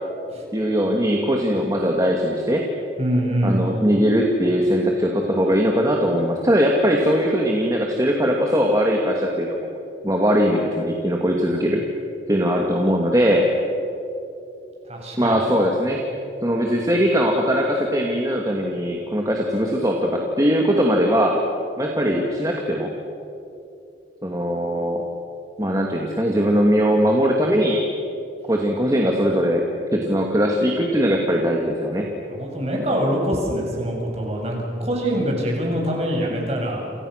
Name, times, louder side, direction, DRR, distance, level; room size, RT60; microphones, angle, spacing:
voice 1, 0.5-2.6 3.4-9.7 10.0-11.8 12.3-13.5 15.2-16.0 16.4-21.4 21.8-22.9 24.2-25.0 25.6-27.9 28.5-29.6 29.9-32.1, equal, 20° right, 0 dB, 2.5 m, -20 dB
voice 2, 3.0-3.6 14.9-15.4 32.4-36.8, equal, 35° right, -1 dB, 7.5 m, -24 dB
29.5 x 28.5 x 6.7 m, 2.7 s
head